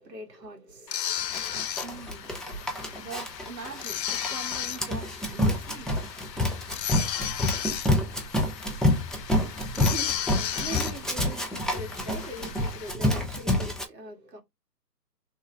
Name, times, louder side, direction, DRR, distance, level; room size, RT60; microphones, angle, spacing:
voice 1, 0.0-1.7 9.7-14.4, right 1 dB, 75° right, 1.9 m, -42 dB
sound 1, 0.9-12.9, left 10 dB, 90° left, 0.6 m, -35 dB
Run, 1.3-13.8, left 1 dB, ahead, 0.3 m, -28 dB
voice 2, 1.8-2.3 3.0-5.9, right 5 dB, 55° right, 1.3 m, -43 dB
3.2 x 3.0 x 3.2 m
hypercardioid pair, 165°, 49 cm